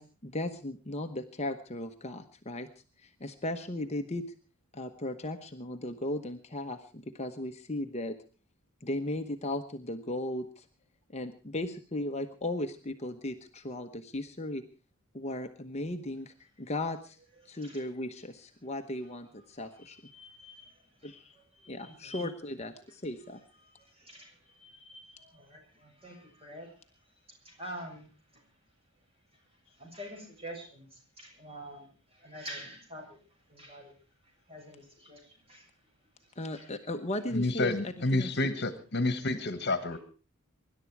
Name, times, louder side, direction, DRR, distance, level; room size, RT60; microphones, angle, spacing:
voice 1, 0.0-2.7 3.0-4.2 4.7-8.1 8.8-10.6 11.1-14.6 15.1-17.2 17.5-20.0 21.0-21.4 21.7-23.4 36.4-37.7 38.1-38.3, left 1 dB, 30° left, 6 dB, 1.0 m, -36 dB
voice 2, 17.5-17.8 19.8-21.1 21.6-22.1 23.6-26.7 27.4-28.1 28.3-28.4 29.8-33.2 33.5-33.9 34.5-35.7 36.5-36.7, equal, 25° right, 2 dB, 7.0 m, -47 dB
voice 3, 37.3-40.0, left 2 dB, 50° left, 12 dB, 1.5 m, -29 dB
24.5 x 11.5 x 4.8 m, 0.38 s
head